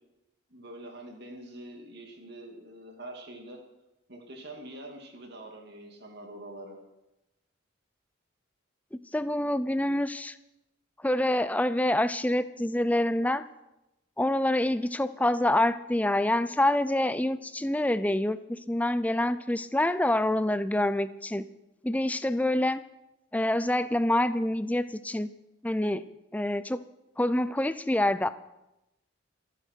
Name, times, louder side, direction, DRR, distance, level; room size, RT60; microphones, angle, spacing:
voice 1, 0.5-3.6 4.1-6.8, right 1 dB, 55° right, 2 dB, 2.5 m, -45 dB
voice 2, 8.9-10.3 11.0-13.4 14.2-21.4 21.8-22.8 23.3-25.3 25.6-26.0 26.3-26.8 27.2-28.3, left 1 dB, 10° left, 14 dB, 0.5 m, -26 dB
28.0 x 10.0 x 4.6 m, 0.94 s
head